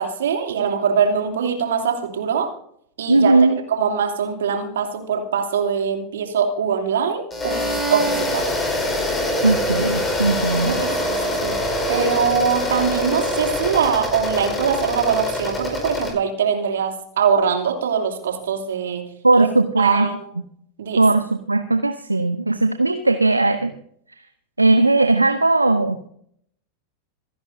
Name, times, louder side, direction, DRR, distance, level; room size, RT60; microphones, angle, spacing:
voice 1, 0.0-2.5 3.0-3.4 3.7-8.5 10.5-11.6 11.9-19.0 19.4-19.5 19.8-20.3 20.8-21.0, right 6 dB, 60° right, 4 dB, 2.8 m, -22 dB
voice 2, 3.1-3.6 9.4-10.8 19.2-20.1 21.0-23.7 24.6-26.1, right 2 dB, 85° right, 9 dB, 0.7 m, -18 dB
sound 1, 7.3-16.1, left 1 dB, 15° left, 4.6 m, -24 dB
27.0 x 11.0 x 2.7 m, 0.65 s
figure-of-eight pair, 90°, 0 cm